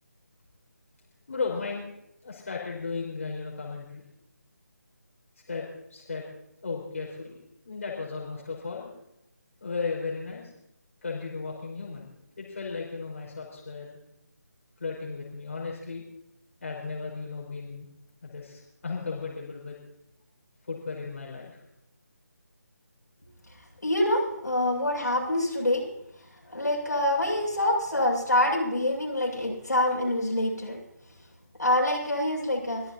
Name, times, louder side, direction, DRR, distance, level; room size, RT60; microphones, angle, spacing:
voice 1, 1.3-1.9 2.2-4.0 5.5-5.6 5.9-6.2 6.6-7.4 7.6-8.9 9.6-10.5 11.0-14.0 14.8-16.0 16.6-17.9 18.2-19.8 20.6-21.6, left 4 dB, 50° left, -3 dB, 4.8 m, -35 dB
voice 2, 23.8-25.9 26.5-30.8 31.6-32.8, left 1 dB, 80° left, -1 dB, 7.1 m, -26 dB
24.0 x 13.5 x 2.8 m, 0.81 s
figure-of-eight pair, 155°, 9 cm